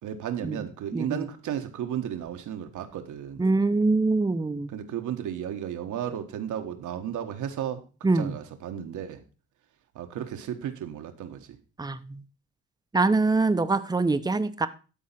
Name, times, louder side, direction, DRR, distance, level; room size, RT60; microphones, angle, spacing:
voice 1, 0.0-3.4 4.7-9.2 9.9-11.6, right 9 dB, 80° right, 1.5 m, -34 dB
voice 2, 0.9-1.2 3.4-4.7 8.0-8.4 11.8-12.2 12.9-14.7, right 3 dB, 15° right, 0.8 m, -24 dB
12.5 x 4.3 x 5.8 m
cardioid pair, 90°, 30 cm